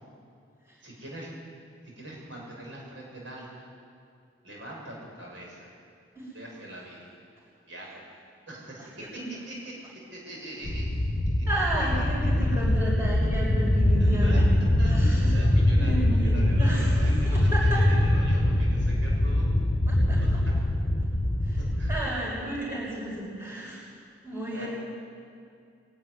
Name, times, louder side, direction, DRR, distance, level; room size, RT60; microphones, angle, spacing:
voice 1, 0.8-1.3 2.0-3.7 4.4-5.7 6.3-7.1 7.7-8.1 8.5-8.9 9.4-9.7 10.1-11.0 14.0-14.4 14.8-19.4 20.2-20.3 21.6-22.1 24.5-24.7, right 1 dB, 75° right, -3 dB, 6.7 m, -42 dB
sound 1, 10.6-22.0, left 1 dB, 30° left, 1.1 m, -23 dB
voice 2, 11.5-15.4 15.8-17.8 19.9-20.2 21.4-21.6 21.9-23.8 24.2-24.7, right 1 dB, 15° right, -7 dB, 6.6 m, -33 dB
22.0 x 12.0 x 9.8 m, 2.3 s
head